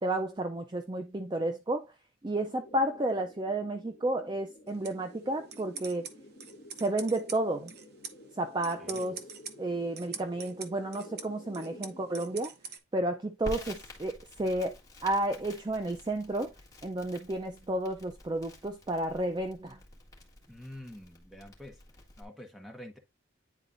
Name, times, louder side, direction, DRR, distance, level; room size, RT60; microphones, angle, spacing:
voice 1, 0.0-1.8 2.2-6.1 6.8-7.7 8.4-9.2 9.6-12.5 12.9-14.8 15.0-16.5 16.8-19.8, right 1 dB, 20° right, 0.4 m, -31 dB
sound 1, 2.4-12.4, left 1 dB, 50° left, 1.2 m, -51 dB
sound 2, 4.7-12.8, right 6 dB, 50° right, 0.9 m, -46 dB
voice 2, 8.8-9.1 20.5-21.8 22.2-23.0, left 1 dB, ahead, 1.2 m, -47 dB
Crackle, 13.4-22.2, left 1 dB, 15° left, 1.8 m, -48 dB
10.0 x 4.0 x 2.5 m
head